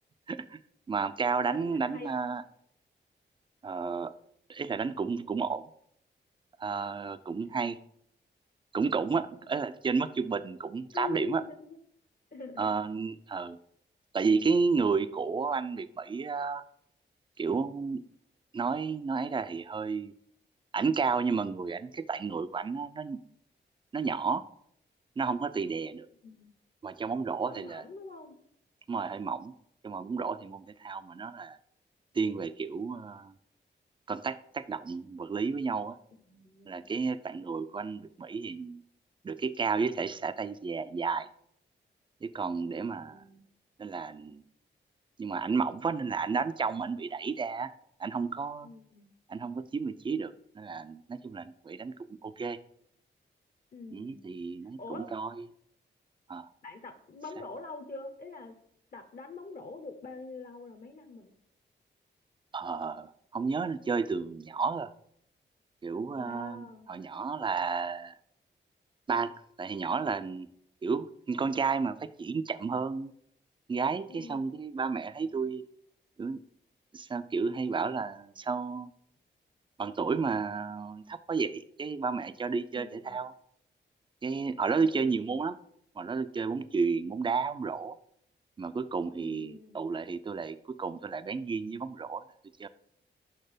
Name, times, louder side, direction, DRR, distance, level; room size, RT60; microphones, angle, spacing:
voice 1, 0.3-0.6 0.9-2.4 3.6-4.1 4.5-5.6 6.6-7.8 8.7-11.4 12.6-13.6 14.1-16.6 17.4-18.0 18.5-20.1 20.7-23.2 23.9-24.4 25.2-26.1 26.8-27.8 28.9-29.5 29.8-31.6 32.1-33.3 34.1-36.0 36.7-38.8 39.2-41.3 42.2-43.2 43.8-44.4 45.2-47.7 48.0-48.7 49.3-51.9 52.2-52.6 53.9-55.3 56.3-56.5 62.5-64.9 65.8-68.2 69.1-69.3 69.6-70.5 70.8-73.1 73.7-75.6 76.2-76.4 76.9-78.9 79.8-83.3 84.2-85.6 86.0-88.0 88.6-92.2 92.6-92.7, right 5 dB, 25° right, 13 dB, 0.4 m, -32 dB
voice 2, 1.5-2.1 9.2-9.5 10.9-11.8 12.3-12.7 26.2-26.5 27.4-28.3 36.3-37.0 42.8-43.4 48.6-49.1 53.7-54.2 54.8-55.1 56.6-58.6 58.9-61.3 66.2-66.9 74.1-74.4 75.3-75.5 82.7-83.2 89.2-89.7, left 4 dB, 50° left, 8 dB, 0.8 m, -45 dB
5.8 x 4.4 x 5.0 m, 0.69 s
cardioid pair, 80°, 19 cm